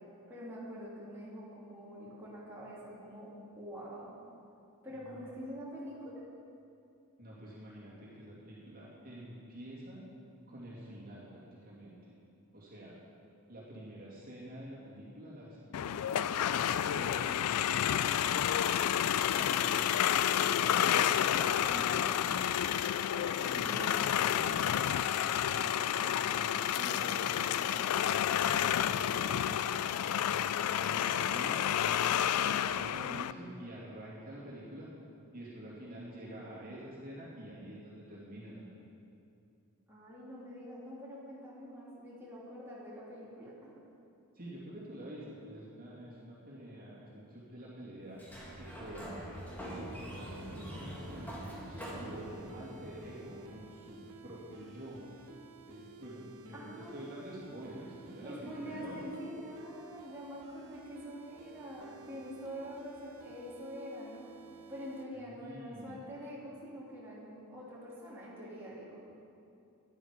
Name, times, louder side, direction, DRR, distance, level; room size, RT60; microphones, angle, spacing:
voice 1, 0.3-3.3 3.5-4.1 4.8-6.2 39.9-43.5 56.5-57.0 58.2-64.3 64.7-69.0, equal, 10° right, -8 dB, 2.9 m, -45 dB
voice 2, 4.9-5.6 7.2-10.0 10.5-12.0 12.5-13.0 13.5-18.6 19.2-19.9 20.4-22.3 23.4-28.0 28.9-30.1 30.9-31.6 32.4-34.9 35.3-38.8 44.3-48.2 48.5-49.3 49.7-51.4 51.7-55.3 55.7-59.0 65.2-66.0, right 1 dB, 40° right, -7 dB, 2.5 m, -47 dB
sound 1, 15.7-33.3, left 10 dB, 85° left, 0.4 m, -30 dB
Sliding door, 48.1-53.8, equal, 10° left, 2.3 m, -44 dB
sound 2, 50.1-65.0, right 3 dB, 70° right, 0.9 m, -54 dB
13.0 x 10.5 x 5.1 m, 2.6 s
head